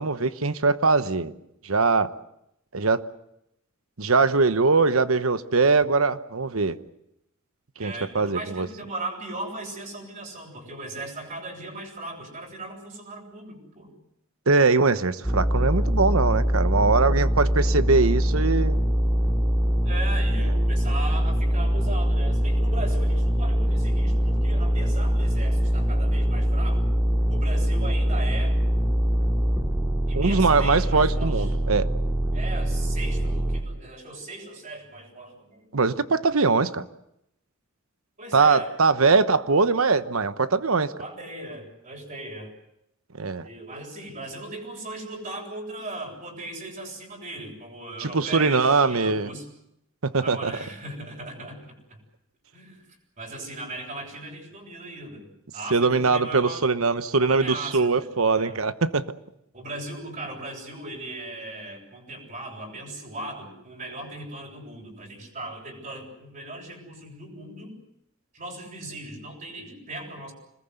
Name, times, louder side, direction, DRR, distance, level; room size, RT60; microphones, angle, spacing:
voice 1, 0.0-1.3 1.6-2.1 2.7-3.0 4.0-6.8 7.8-8.7 14.5-18.8 30.1-31.9 35.7-36.9 38.3-40.9 43.2-43.5 48.0-49.3 50.0-50.6 55.7-59.1, right 4 dB, 80° right, 12 dB, 1.1 m, -22 dB
voice 2, 7.8-13.9 19.8-26.8 27.3-28.6 30.1-31.5 32.3-35.6 38.2-38.7 41.0-42.5 43.4-49.5 50.2-51.7 52.5-52.9 53.2-56.7 57.2-58.1 58.3-58.6 59.5-67.7 68.3-70.3, right 2 dB, 40° right, -1 dB, 7.8 m, -38 dB
sound 1, 15.2-33.6, equal, 15° right, 3.3 m, -23 dB
26.5 x 20.5 x 8.1 m, 0.81 s
head